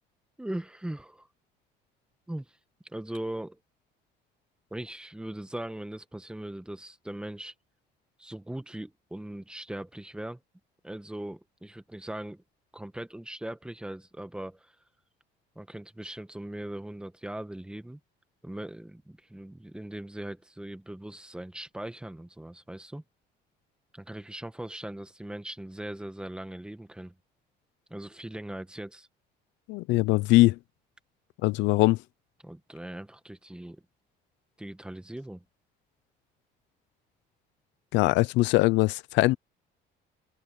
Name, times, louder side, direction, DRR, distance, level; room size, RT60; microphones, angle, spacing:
voice 1, 0.4-1.3 2.3-2.6 2.8-3.6 4.7-7.5 8.2-10.4 10.8-12.4 12.7-14.8 15.5-18.0 18.4-23.0 23.9-27.1 27.9-29.1 32.4-33.8 34.6-35.4, right 1 dB, 5° right, 1.3 m, -39 dB
voice 2, 29.7-30.6 31.4-32.0 37.9-39.4, left 20 dB, 85° left, 0.6 m, -22 dB
open air
cardioid pair, 140°, 18 cm